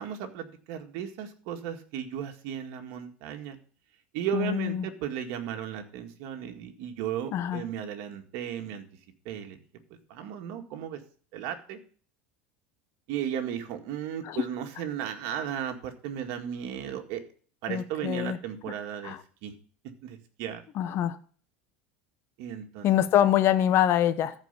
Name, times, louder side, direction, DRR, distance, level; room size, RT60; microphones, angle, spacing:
voice 1, 0.0-3.6 4.1-8.8 9.3-9.6 10.1-11.0 11.3-11.8 13.1-17.2 17.6-19.2 19.4-19.5 20.0-20.6 22.4-22.9 23.2-23.3, right 9 dB, 60° right, 5 dB, 2.0 m, -35 dB
voice 2, 4.3-4.8 7.3-7.6 14.2-14.4 17.7-18.4 19.0-19.2 20.8-21.2 22.8-24.3, left 11 dB, 45° left, 10 dB, 1.0 m, -24 dB
14.0 x 4.9 x 6.8 m, 0.43 s
supercardioid pair, 130°, 6 cm